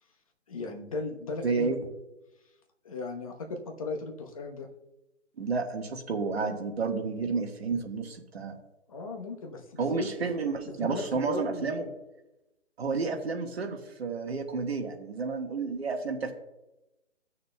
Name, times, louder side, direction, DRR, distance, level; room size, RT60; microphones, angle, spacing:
voice 1, 0.5-1.7 2.8-4.7 8.9-10.1 10.8-11.9, left 3 dB, 30° left, 3 dB, 0.9 m, -36 dB
voice 2, 1.4-1.8 5.4-8.5 9.8-11.8 12.8-16.3, right 4 dB, 55° right, 3 dB, 1.5 m, -31 dB
15.0 x 6.6 x 2.2 m, 0.95 s
hypercardioid pair, 160°, 37 cm